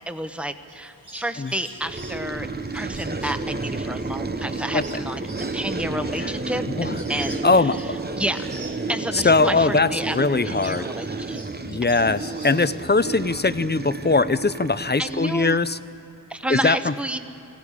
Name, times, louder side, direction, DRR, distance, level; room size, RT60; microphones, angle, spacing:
voice 1, 0.1-2.5 2.7-5.2 5.5-7.7 8.2-8.5 8.9-11.4 11.7-11.8 15.0-15.6 16.3-17.2, right 1 dB, 5° right, 8 dB, 1.0 m, -30 dB
sound 1, 0.7-9.6 9.9-12.9, right 2 dB, 50° right, 2.9 m, -45 dB
sound 2, 1.8-15.7, right 3 dB, 25° right, 0.7 m, -31 dB
voice 2, 7.4-7.8 9.1-10.9 11.6-15.8 16.5-16.9, left 3 dB, 25° left, 14 dB, 0.6 m, -21 dB
23.5 x 16.5 x 9.9 m, 2.8 s
wide cardioid pair, 85°, 40 cm